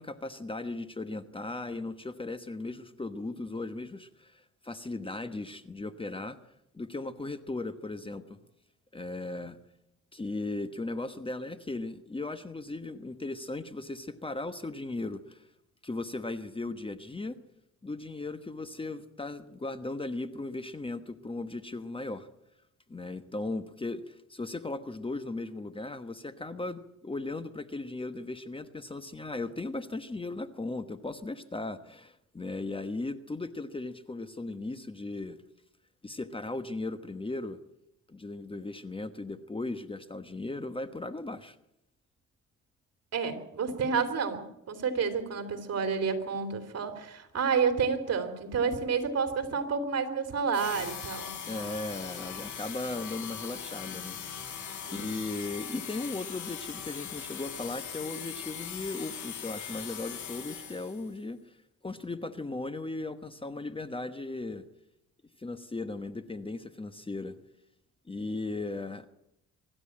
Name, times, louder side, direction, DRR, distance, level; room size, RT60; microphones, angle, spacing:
voice 1, 0.0-6.4 6.7-8.4 8.9-9.6 10.1-15.5 15.8-17.4 17.8-22.3 22.9-35.4 36.0-37.6 38.1-41.6 51.4-54.6 54.9-61.6 61.8-64.6 65.4-67.3 68.1-69.1, left 2 dB, 15° left, 11 dB, 1.2 m, -37 dB
voice 2, 43.1-51.3 54.8-55.1, right 5 dB, 55° right, 7 dB, 3.2 m, -30 dB
sound 1, 50.5-61.1, left 8 dB, 75° left, 6.3 m, -40 dB
24.5 x 12.5 x 8.7 m, 0.84 s
cardioid pair, 90°, 30 cm